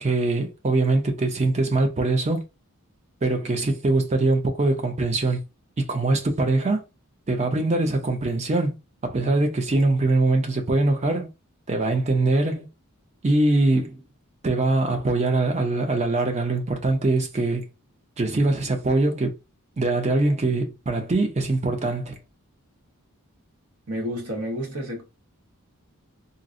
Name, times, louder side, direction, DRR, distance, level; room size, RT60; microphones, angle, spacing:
voice 1, 0.0-2.5 3.2-5.4 5.8-6.8 7.3-8.8 9.0-11.3 11.7-12.7 13.2-14.0 14.4-17.7 18.2-19.3 19.8-22.2, right 2 dB, 30° right, 0.5 m, -22 dB
voice 2, 23.9-25.0, equal, 75° right, 1.1 m, -30 dB
3.8 x 2.0 x 2.5 m
head